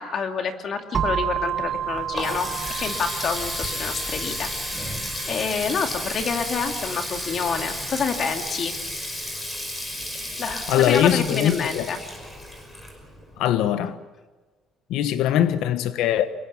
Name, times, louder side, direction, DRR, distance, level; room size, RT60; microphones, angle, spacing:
voice 1, 0.0-2.5 2.8-4.5 4.8-5.0 5.2-8.7 10.4-12.0, left 6 dB, 45° left, 2.5 m, -28 dB
sound 1, 0.9-8.8, right 8 dB, 30° right, 1.7 m, -32 dB
Water tap faucet, 1.7-13.4, left 1 dB, 15° left, 5.5 m, -32 dB
voice 2, 10.7-11.9 13.4-14.0 14.9-16.3, left 11 dB, 80° left, 1.2 m, -21 dB
24.5 x 22.5 x 7.3 m
cardioid pair, 150°, 0 cm